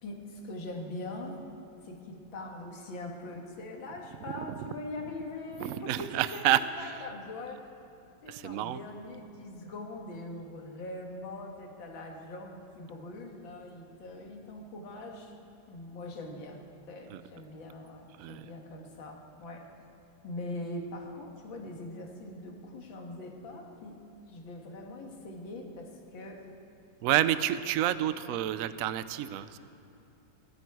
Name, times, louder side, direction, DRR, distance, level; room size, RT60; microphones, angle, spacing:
voice 1, 0.0-1.4 1.8-7.7 8.2-15.3 15.7-19.7 20.2-26.5, left 2 dB, 90° left, 2 dB, 2.3 m, -42 dB
voice 2, 5.6-7.1 8.3-8.8 17.1-17.2 18.2-18.5 27.0-29.6, right 12 dB, 80° right, 13 dB, 0.7 m, -29 dB
19.0 x 13.5 x 4.7 m, 2.7 s
omnidirectional pair, 2.1 m